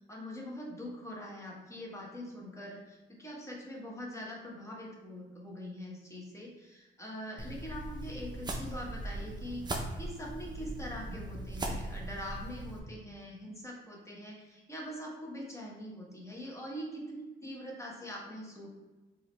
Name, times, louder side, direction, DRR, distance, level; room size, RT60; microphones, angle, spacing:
voice 1, 0.0-18.7, equal, 15° left, -3 dB, 1.3 m, -43 dB
sound 1, 7.4-12.8, right 1 dB, 20° right, 0.7 m, -39 dB
4.8 x 2.8 x 3.2 m, 1.1 s
cardioid pair, 90°, 20 cm